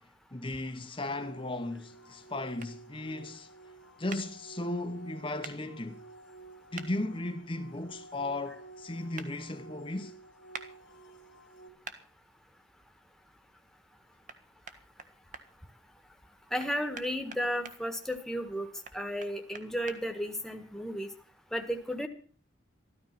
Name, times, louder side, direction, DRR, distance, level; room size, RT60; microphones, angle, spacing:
voice 1, 0.3-3.5 4.0-6.0 6.7-10.2, left 2 dB, 30° left, 1.1 m, -36 dB
sound 1, 1.1-11.7, right 3 dB, 75° left, 2.6 m, -52 dB
sound 2, 2.6-2.7 4.1-4.2 5.4-5.6 6.7-6.9 9.2-9.3 10.5-10.7 11.8-12.0 14.3-14.4 14.7-15.4 16.6-17.8 18.8-20.0, right 5 dB, 45° right, 1.4 m, -43 dB
voice 2, 16.5-18.7 18.9-21.1 21.5-22.1, equal, ahead, 1.5 m, -33 dB
14.0 x 13.0 x 5.9 m
head